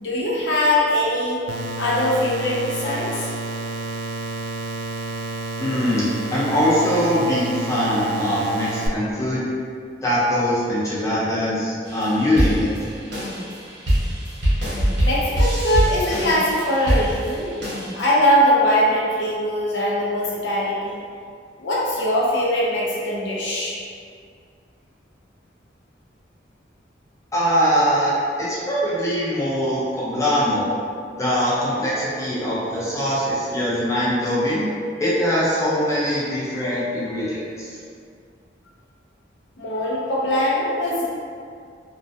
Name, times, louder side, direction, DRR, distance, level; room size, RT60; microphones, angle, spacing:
voice 1, 0.0-1.4 1.8-3.3 15.0-17.5 17.9-21.0 21.6-23.8 39.6-41.0, left 1 dB, 80° left, -5 dB, 0.5 m, -21 dB
sound 1, 1.5-8.9, right 2 dB, 90° right, 0.3 m, -30 dB
voice 2, 5.6-9.5 10.0-12.7 27.3-30.7 31.2-34.7 35.0-37.8, equal, 20° left, -9 dB, 0.6 m, -22 dB
sound 2, 11.9-18.1, equal, 70° right, 0.9 m, -23 dB
2.2 x 2.1 x 2.6 m, 2.2 s
head